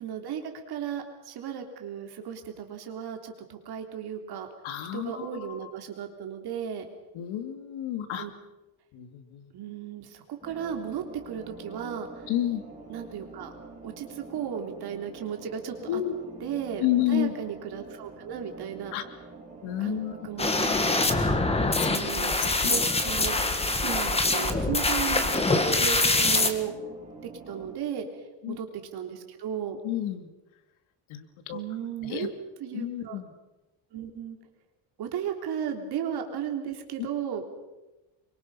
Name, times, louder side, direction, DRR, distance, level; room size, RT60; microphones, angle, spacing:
voice 1, 0.0-4.5 4.9-6.9 8.2-8.3 9.5-12.1 12.9-13.5 13.8-16.0 16.4-18.9 19.8-20.7 21.9-23.4 23.7-26.7 27.2-28.1 28.5-28.7 28.9-29.8 31.5-32.3 32.6-33.2 33.9-34.4 35.0-37.4, right 8 dB, 50° right, 4 dB, 3.5 m, -35 dB
voice 2, 4.6-5.7 7.1-8.3 8.9-9.5 12.3-12.6 15.9-16.2 16.8-17.3 18.9-19.0 19.6-20.3 21.5-22.3 22.6-22.7 23.0-23.1 24.4-24.5 28.4-28.6 29.8-30.3 31.1-31.6 32.0-32.3 32.7-33.3 37.0-37.1, left 12 dB, 70° left, 9 dB, 2.5 m, -31 dB
sound 1, 10.4-27.7, right 3 dB, 15° right, 5.8 m, -46 dB
sound 2, 20.4-26.5, left 2 dB, 10° left, 1.7 m, -24 dB
27.0 x 24.0 x 5.6 m, 1.0 s
cardioid pair, 165°, 49 cm